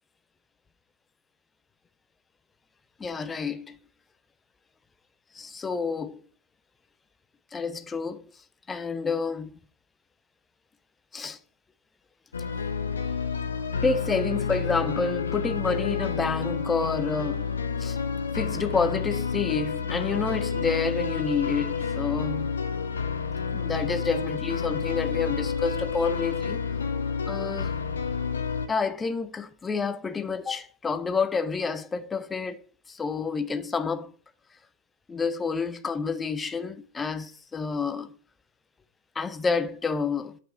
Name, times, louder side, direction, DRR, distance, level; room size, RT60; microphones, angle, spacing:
voice 1, 3.0-3.8 5.3-6.2 7.5-8.2 8.7-9.5 11.1-11.4 13.8-18.0 18.3-22.5 23.5-26.6 27.3-27.7 28.7-32.6 32.9-34.1 35.1-38.1 39.2-40.4, left 5 dB, 15° left, 0.5 m, -29 dB
sound 1, 12.3-28.7, left 5 dB, 70° left, 0.7 m, -29 dB
5.6 x 4.3 x 6.1 m
figure-of-eight pair, 90°, 0 cm